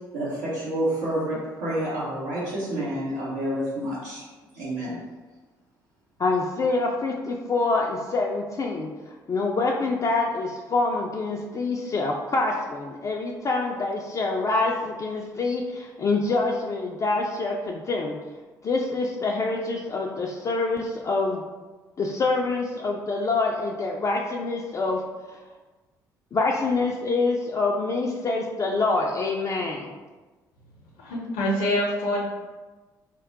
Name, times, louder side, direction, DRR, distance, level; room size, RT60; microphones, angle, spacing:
voice 1, 0.1-4.2 4.5-5.0, right 1 dB, 80° right, -11 dB, 0.7 m, -29 dB
voice 2, 6.2-18.1 18.6-21.4 22.0-25.0 25.3-25.4 26.3-29.9, left 3 dB, 30° left, -1 dB, 0.3 m, -26 dB
voice 3, 31.0-32.2, left 1 dB, 70° left, -2 dB, 0.6 m, -25 dB
2.2 x 2.0 x 3.8 m, 1.2 s
figure-of-eight pair, 50°, 10 cm